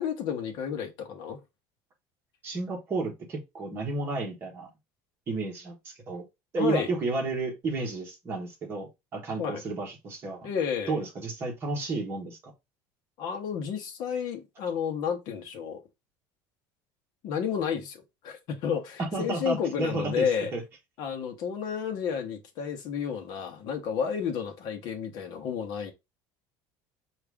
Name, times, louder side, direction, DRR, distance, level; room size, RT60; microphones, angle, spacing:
voice 1, 0.0-1.4 6.6-6.9 9.4-9.6 10.4-11.0 13.2-15.8 17.2-20.5 21.0-25.9, left 7 dB, 45° left, 0.9 m, -31 dB
voice 2, 2.4-4.7 5.3-6.2 6.5-10.5 10.9-12.5 19.0-20.6, right 3 dB, 25° right, 1.1 m, -32 dB
4.7 x 2.4 x 3.4 m
cardioid pair, 175°, 9 cm